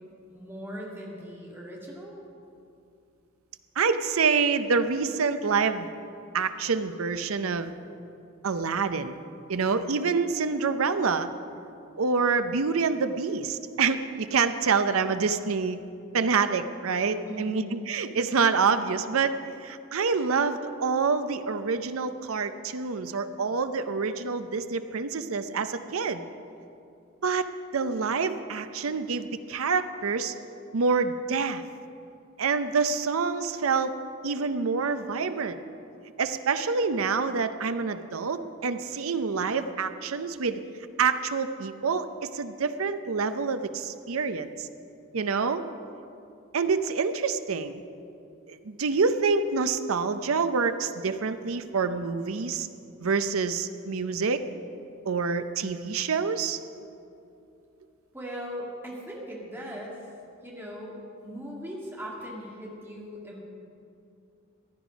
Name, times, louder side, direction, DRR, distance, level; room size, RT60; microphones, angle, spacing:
voice 1, 0.3-2.2 17.2-17.8 58.1-60.0 60.4-61.0 61.2-63.4, equal, 10° right, -3 dB, 2.0 m, -39 dB
voice 2, 3.8-5.9 6.3-7.7 8.4-9.1 9.5-11.3 12.0-15.8 16.1-26.2 27.2-30.3 30.7-31.6 32.4-34.0 34.2-35.6 36.2-40.6 41.0-44.7 45.1-45.6 46.5-47.8 48.5-52.7 53.0-54.5 55.0-56.6, right 5 dB, 85° right, 10 dB, 0.6 m, -27 dB
15.5 x 10.0 x 5.1 m, 2.6 s
head